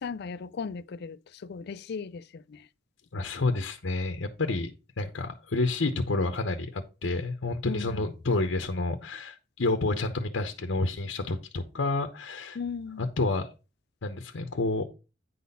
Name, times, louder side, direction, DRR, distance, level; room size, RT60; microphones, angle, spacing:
voice 1, 0.0-2.7 7.6-8.1 12.5-13.1, left 5 dB, 60° left, 0.4 m, -37 dB
voice 2, 3.1-4.7 5.0-12.6 13.0-13.5 14.0-14.8, left 2 dB, 90° left, 0.8 m, -29 dB
9.3 x 4.1 x 5.4 m
head